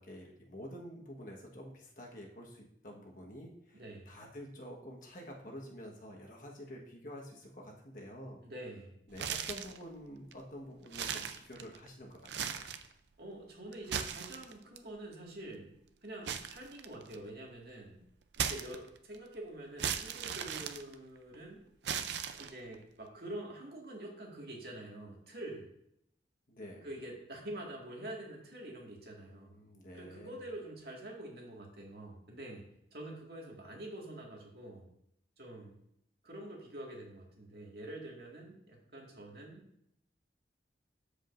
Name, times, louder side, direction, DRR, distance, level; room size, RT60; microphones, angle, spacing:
voice 1, 0.0-8.4 9.1-12.7 26.5-26.9 29.2-30.4, equal, 45° left, -1 dB, 1.4 m, -49 dB
voice 2, 3.7-4.1 8.4-9.0 13.2-15.7 16.0-18.0 18.4-21.6 22.4-25.7 26.8-29.5 29.9-32.6 32.9-34.9 35.4-35.8 36.2-39.6, right 1 dB, 60° right, -1 dB, 2.0 m, -46 dB
sound 1, 9.1-9.8 10.3-10.4 10.9-11.9 12.2-12.9 13.7-14.8 16.3-17.3 18.3-19.2 19.8-21.4 21.8-22.8, right 7 dB, 75° right, 0.5 m, -37 dB
13.5 x 5.0 x 2.6 m, 0.75 s
head